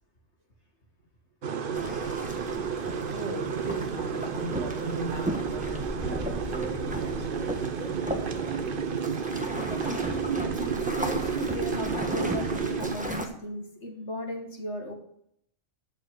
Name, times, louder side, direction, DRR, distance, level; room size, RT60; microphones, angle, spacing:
sound 1, 1.4-13.0, right 6 dB, 50° right, 0.9 m, -32 dB
sound 2, 1.7-13.3, equal, 5° right, 1.2 m, -36 dB
voice 1, 1.8-2.4 7.7-7.9 9.7-15.0, equal, 65° left, 2.4 m, -36 dB
voice 2, 3.1-8.9, right 2 dB, 75° right, 2.6 m, -38 dB
11.5 x 4.9 x 7.9 m
omnidirectional pair, 1.3 m